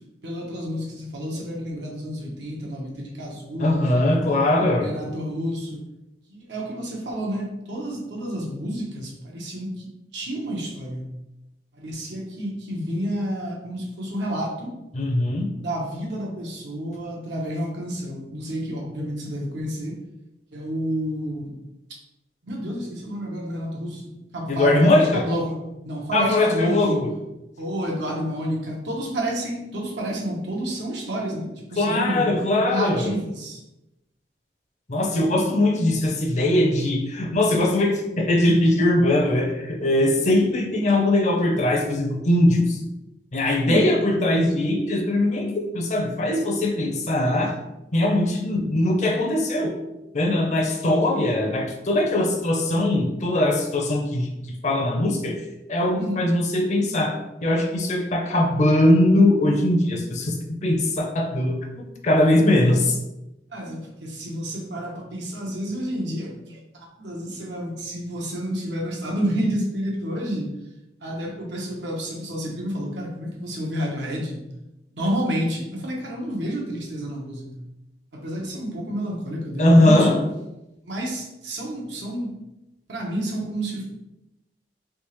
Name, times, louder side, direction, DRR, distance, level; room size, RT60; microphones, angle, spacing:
voice 1, 0.2-4.3 4.8-5.8 6.3-11.1 11.7-14.7 15.6-20.0 20.5-21.5 22.4-25.6 25.8-27.0 27.6-32.3 32.6-33.6 43.6-43.9 56.0-56.2 63.5-70.5 71.0-74.5 74.9-77.6 78.1-80.2 80.8-82.3 82.9-83.8, equal, 90° right, -2 dB, 0.9 m, -30 dB
voice 2, 3.6-4.9 14.9-15.5 24.5-25.2 26.1-27.1 31.8-33.1 34.9-42.8 43.3-47.6 47.9-49.7 50.1-54.3 54.6-55.4 55.7-57.1 57.4-60.4 60.6-61.6 62.0-63.0 79.6-80.2, left 1 dB, 40° left, 2 dB, 0.5 m, -20 dB
3.5 x 2.8 x 3.0 m, 0.94 s
head